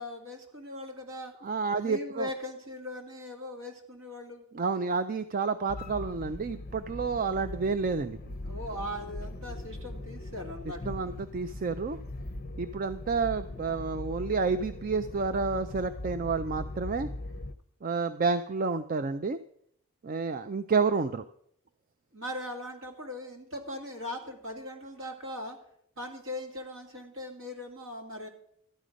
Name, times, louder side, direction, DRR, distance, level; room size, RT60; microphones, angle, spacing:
voice 1, 0.0-1.3 1.8-4.4 8.5-11.1 22.1-25.6 26.0-28.3, left 1 dB, 60° right, 3 dB, 2.2 m, -39 dB
voice 2, 1.4-2.3 4.5-8.3 10.9-12.0 12.6-17.1 17.8-19.4 20.0-21.2, right 4 dB, 40° right, 11 dB, 0.4 m, -30 dB
sound 1, 5.7-17.5, left 2 dB, 45° left, 0.7 m, -40 dB
13.0 x 9.9 x 5.1 m, 0.69 s
head